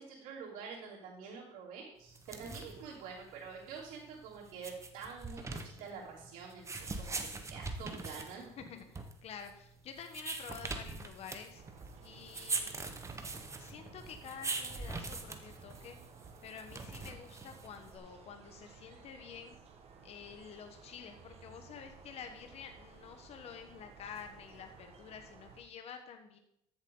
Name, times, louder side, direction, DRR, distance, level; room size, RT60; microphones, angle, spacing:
voice 1, 0.0-7.2 7.5-8.5, right 5 dB, 75° right, -7 dB, 3.1 m, -47 dB
sound 1, 2.1-18.0, right 3 dB, 20° right, 1.2 m, -42 dB
voice 2, 8.6-11.6 12.0-12.7 13.6-16.0 16.4-19.6 20.0-26.4, left 7 dB, 50° left, 6 dB, 1.2 m, -49 dB
windy porch morning A, 11.5-25.6, right 5 dB, 45° right, 1.6 m, -56 dB
13.5 x 7.4 x 3.9 m, 0.78 s
supercardioid pair, 95°, 14 cm